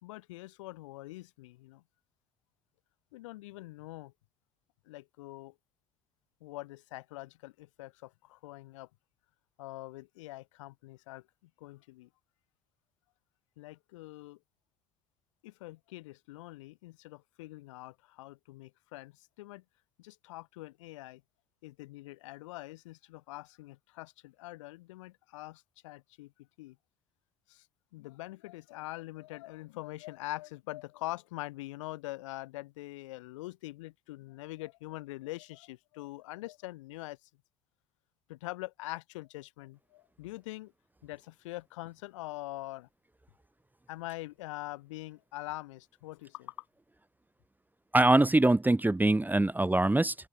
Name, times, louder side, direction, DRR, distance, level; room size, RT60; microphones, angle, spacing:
voice 1, 0.0-1.8 3.1-4.1 4.9-5.5 6.4-8.9 9.6-11.2 11.6-12.1 13.6-14.4 15.4-19.1 19.4-19.6 20.0-21.2 21.6-26.3 26.6-26.8 27.5-27.7 27.9-37.2 38.3-40.7 41.0-42.9 43.9-46.6, left 19 dB, 75° left, 1.9 m, -44 dB
voice 2, 47.9-50.1, right 2 dB, 10° right, 0.9 m, -23 dB
open air
figure-of-eight pair, 50°, 16 cm